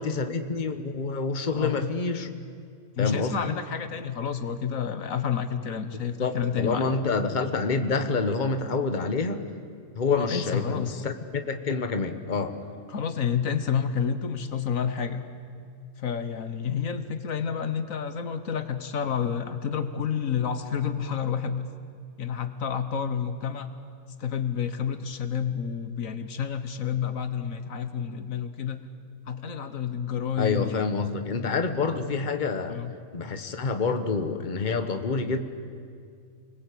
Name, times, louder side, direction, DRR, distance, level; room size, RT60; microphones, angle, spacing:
voice 1, 0.0-2.3 3.0-3.5 6.2-9.5 9.9-12.6 30.4-32.8 33.1-35.4, left 4 dB, 35° left, 8 dB, 1.4 m, -27 dB
voice 2, 1.5-1.9 3.0-6.9 10.2-11.2 12.9-15.2 16.0-21.7 22.2-23.7 24.2-28.8 29.3-30.9 32.7-32.9, left 7 dB, 75° left, 10 dB, 1.5 m, -29 dB
29.0 x 20.5 x 8.5 m, 2.3 s
omnidirectional pair, 1.5 m